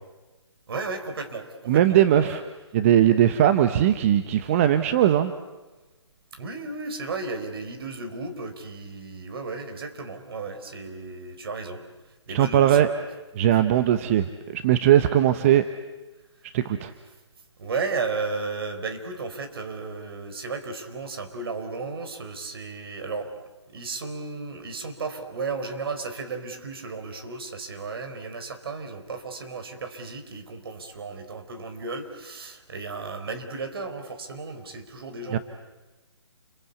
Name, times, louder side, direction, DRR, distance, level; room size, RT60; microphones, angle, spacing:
voice 1, 0.7-2.4 6.3-12.9 16.4-16.5 17.6-23.3 23.7-35.4, right 4 dB, 55° right, 7 dB, 4.3 m, -34 dB
voice 2, 1.7-2.4 2.7-5.3 12.3-12.9 13.3-15.6 16.4-16.9 35.3-35.4, right 11 dB, 30° right, 10 dB, 0.9 m, -19 dB
29.5 x 23.0 x 8.3 m, 1.2 s
figure-of-eight pair, 150°, 15 cm